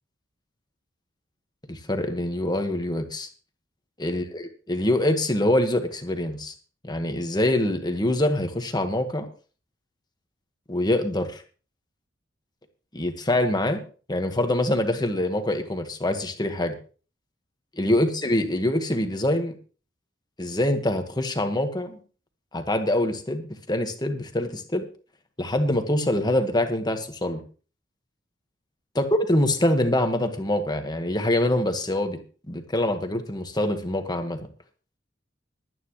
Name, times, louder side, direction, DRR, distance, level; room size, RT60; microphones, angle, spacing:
voice 1, 1.7-3.3 4.0-6.5 6.8-9.3 10.7-11.4 12.9-13.8 14.1-16.8 17.8-19.5 20.4-22.0 22.5-24.8 25.4-27.4 28.9-32.2 32.5-34.4, left 1 dB, 20° left, 6 dB, 1.6 m, -25 dB
21.5 x 9.5 x 3.2 m, 0.38 s
head